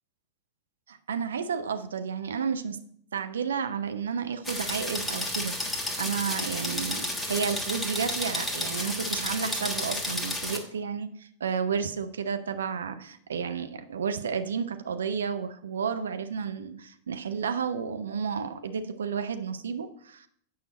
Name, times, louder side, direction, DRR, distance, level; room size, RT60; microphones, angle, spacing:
voice 1, 0.9-2.8 3.1-5.6 6.0-20.3, right 6 dB, 65° right, 9 dB, 0.6 m, -31 dB
sound 1, 4.4-10.6, left 1 dB, 5° left, 1.3 m, -32 dB
8.7 x 5.6 x 4.2 m, 0.66 s
figure-of-eight pair, 90°, 0 cm